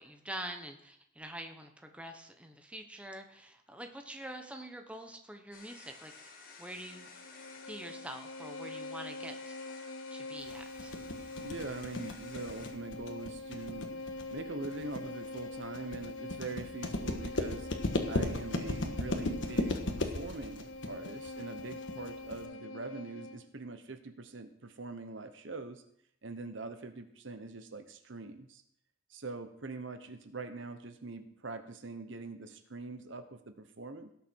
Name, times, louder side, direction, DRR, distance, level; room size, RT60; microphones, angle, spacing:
voice 1, 0.0-6.3 6.6-7.1 7.7-9.5 10.1-11.0, right 1 dB, 5° right, 5 dB, 1.0 m, -45 dB
sound 1, 5.5-12.7, left 4 dB, 45° left, 2.2 m, -54 dB
Bowed string instrument, 6.9-23.5, left 2 dB, 85° left, 0.8 m, -44 dB
sound 2, 10.5-22.5, left 1 dB, 65° left, 1.4 m, -35 dB
voice 2, 11.4-13.9 14.3-17.7 18.1-25.8 26.2-28.6 29.1-34.1, right 3 dB, 65° right, 9 dB, 1.0 m, -43 dB
18.0 x 6.7 x 4.5 m, 0.72 s
head